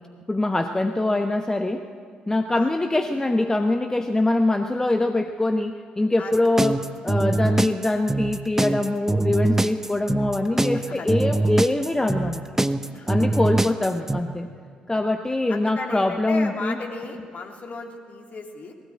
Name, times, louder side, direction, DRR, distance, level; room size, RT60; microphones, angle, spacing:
voice 1, 0.3-1.8 2.3-6.8 7.0-12.4 13.1-14.5 14.9-16.7, left 2 dB, 15° left, 6 dB, 1.1 m, -23 dB
sound 1, 6.3-14.2, right 2 dB, 10° right, 1.0 m, -23 dB
voice 2, 10.5-11.2 12.9-13.4 15.5-18.7, left 4 dB, 45° left, 2 dB, 3.0 m, -35 dB
20.0 x 17.5 x 8.8 m, 2.1 s
figure-of-eight pair, 40°, 4 cm